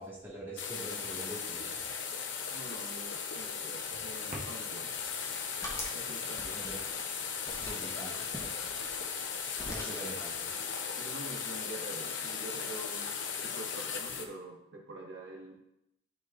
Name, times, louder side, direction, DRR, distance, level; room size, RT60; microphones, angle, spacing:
voice 1, 0.0-2.0 6.5-6.8 7.6-8.6 9.7-10.5, right 1 dB, 10° right, -6 dB, 1.7 m, -44 dB
sound 1, 0.6-14.3, left 6 dB, 65° left, 0.7 m, -37 dB
sound 2, 2.4-10.6, right 1 dB, 35° right, 1.1 m, -54 dB
voice 2, 2.5-4.9 5.9-6.6 9.9-10.1 11.0-13.1 13.4-15.5, right 2 dB, 80° right, -2 dB, 1.6 m, -46 dB
sound 3, 5.0-6.0 6.4-7.1 7.4-7.8 8.3-9.3 9.6-10.1, left 1 dB, 15° left, 1.1 m, -44 dB
11.5 x 4.4 x 2.5 m, 0.82 s
head